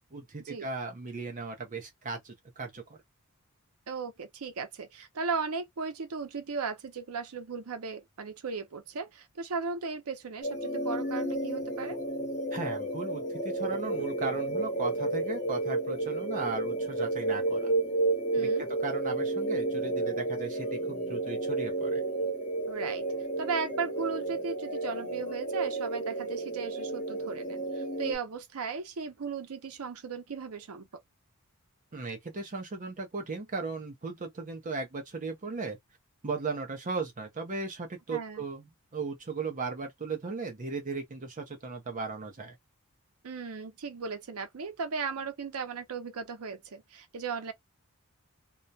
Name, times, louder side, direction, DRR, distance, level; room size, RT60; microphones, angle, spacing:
voice 1, 0.1-3.0 12.5-17.7 18.4-22.0 31.9-35.8 36.2-38.6 38.9-42.6, right 4 dB, 35° right, 0.6 m, -37 dB
voice 2, 3.9-12.0 18.3-18.7 22.7-23.1 23.4-30.9 38.1-38.4 43.2-47.5, right 5 dB, 75° right, 0.6 m, -36 dB
sound 1, 10.4-28.2, right 2 dB, 35° left, 1.0 m, -31 dB
2.2 x 2.1 x 2.6 m
head